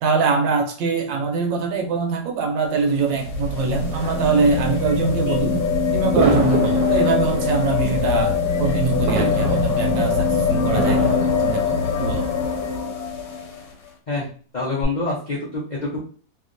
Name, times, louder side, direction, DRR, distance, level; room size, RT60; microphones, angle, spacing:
voice 1, 0.0-5.6 5.9-12.3, right 4 dB, 90° right, 4 dB, 1.4 m, -23 dB
sound 1, 2.6-13.6 14.8-14.9, left 4 dB, 65° left, 1.0 m, -22 dB
sound 2, 3.7-12.8, right 3 dB, 65° right, 1.1 m, -30 dB
voice 2, 14.5-16.0, left 2 dB, 90° left, -5 dB, 0.4 m, -26 dB
2.9 x 2.8 x 2.5 m, 0.41 s
omnidirectional pair, 1.9 m